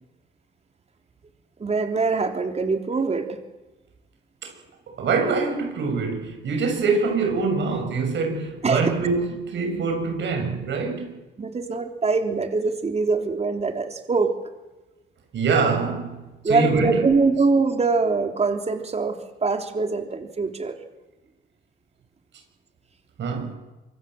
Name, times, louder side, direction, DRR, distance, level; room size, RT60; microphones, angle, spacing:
voice 1, 1.6-3.4 8.6-8.9 11.4-14.3 16.4-20.7, right 4 dB, 35° right, 5 dB, 3.4 m, -23 dB
voice 2, 4.9-11.2 15.3-17.0 23.2-23.5, right 4 dB, 65° right, 3 dB, 6.8 m, -24 dB
25.5 x 23.5 x 7.8 m, 1.1 s
cardioid pair, 90°, 20 cm